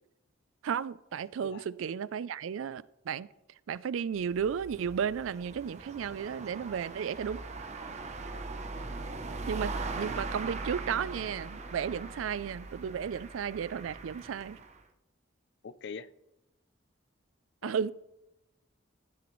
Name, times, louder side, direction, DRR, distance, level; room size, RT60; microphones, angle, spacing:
voice 1, 0.6-3.3 3.7-7.5 9.5-9.7 10.0-14.6 17.6-17.9, right 7 dB, 80° right, 19 dB, 0.4 m, -34 dB
sound 1, 4.2-14.8, right 3 dB, 35° right, 0.7 m, -40 dB
voice 2, 8.7-9.1 15.6-16.1 17.6-17.8, left 5 dB, 60° left, 15 dB, 0.4 m, -44 dB
15.0 x 6.9 x 3.1 m, 0.90 s
head